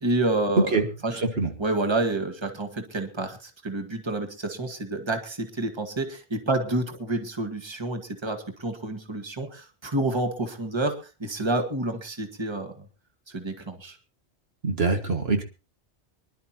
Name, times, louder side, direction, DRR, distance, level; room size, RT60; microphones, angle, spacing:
voice 1, 0.0-1.2 1.6-12.9 13.3-14.0, right 2 dB, 25° right, 5 dB, 1.9 m, -29 dB
voice 2, 1.1-1.5 14.6-15.4, right 3 dB, 60° right, 4 dB, 2.0 m, -23 dB
24.5 x 11.5 x 2.9 m, 0.31 s
omnidirectional pair, 1.1 m